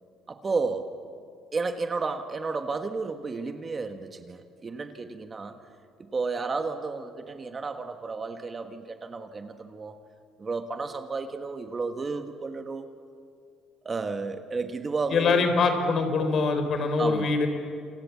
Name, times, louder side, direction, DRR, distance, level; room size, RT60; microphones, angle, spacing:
voice 1, 0.3-0.9 1.5-5.6 6.0-10.0 10.4-12.9 13.8-15.5 17.0-17.4, right 4 dB, 25° right, 7 dB, 1.4 m, -32 dB
voice 2, 15.1-17.5, left 4 dB, 50° left, 8 dB, 3.9 m, -23 dB
28.0 x 26.5 x 7.2 m, 2.3 s
cardioid pair, 115°, 0 cm